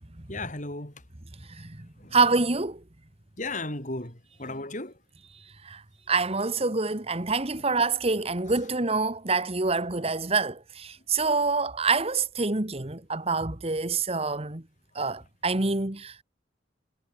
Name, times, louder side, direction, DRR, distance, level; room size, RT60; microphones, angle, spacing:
voice 1, 0.3-0.9 2.0-2.2 3.4-4.9, left 2 dB, 40° left, 7.4 m, -35 dB
voice 2, 1.5-2.8 5.6-5.8 6.1-14.6 14.9-16.2, right 4 dB, 30° right, 1.6 m, -26 dB
head